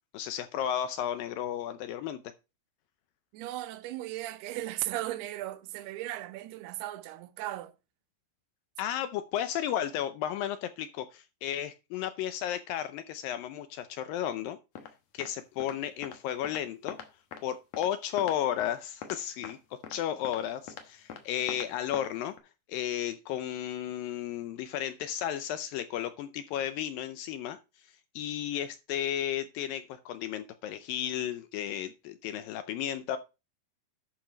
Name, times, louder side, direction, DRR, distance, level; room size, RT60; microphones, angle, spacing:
voice 1, 0.1-2.2 8.8-14.6 15.1-17.0 17.4-22.4 22.7-27.6 28.2-33.2, left 10 dB, 80° left, 2.1 m, -33 dB
voice 2, 3.3-7.7, right 15 dB, 85° right, 2.7 m, -36 dB
sound 1, 14.7-14.9 15.2-15.3 15.6-15.7 16.0-16.2 16.4-16.6 16.9-17.4 17.7-17.9 18.2-18.7 19.0-19.2 19.4-19.5 19.8-20.0 20.2-20.4 20.7-20.8 21.1-21.2 21.5-21.7 21.9-22.1 22.4-22.5, left 7 dB, 60° left, 1.8 m, -41 dB
11.5 x 4.7 x 5.2 m
omnidirectional pair, 4.5 m